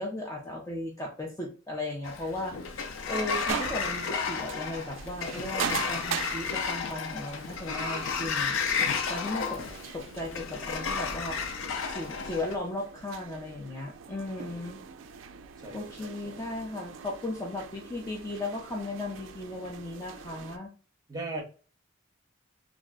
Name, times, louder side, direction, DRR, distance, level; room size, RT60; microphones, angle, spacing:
voice 1, 0.0-8.6 9.1-9.6 9.9-11.4 11.9-14.8 15.7-20.7, left 2 dB, 15° left, -1 dB, 0.4 m, -36 dB
Sliding door, 2.0-12.6, left 5 dB, 80° left, 0.4 m, -32 dB
sound 1, 3.5-20.6, right 7 dB, 70° right, 0.3 m, -41 dB
voice 2, 9.5-10.0 14.5-15.1 15.6-16.4 21.1-21.4, right 2 dB, 20° right, 0 dB, 0.8 m, -41 dB
2.5 x 2.0 x 3.6 m, 0.36 s
head